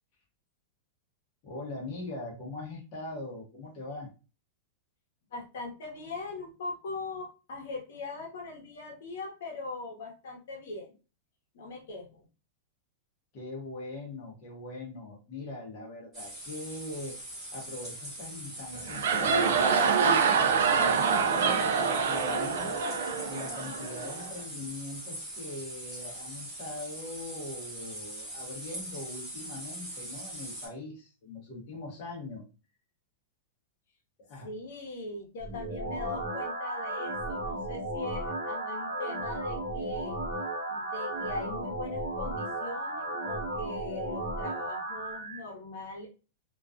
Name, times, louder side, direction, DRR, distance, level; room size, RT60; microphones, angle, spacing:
voice 1, 1.4-4.1 13.3-17.2 17.5-22.8 23.3-32.4 34.2-34.5, left 2 dB, 30° left, -4 dB, 0.8 m, -41 dB
voice 2, 5.3-10.9 11.5-12.3 34.4-40.2 40.7-46.1, left 3 dB, 65° left, 0 dB, 0.9 m, -40 dB
sound 1, 16.1-30.7, right 1 dB, 10° right, 1.0 m, -42 dB
sound 2, 18.7-24.3, right 5 dB, 65° right, 0.4 m, -26 dB
sound 3, 35.4-45.4, right 1 dB, 30° right, 0.6 m, -34 dB
2.3 x 2.2 x 2.4 m, 0.32 s
supercardioid pair, 175°, 0 cm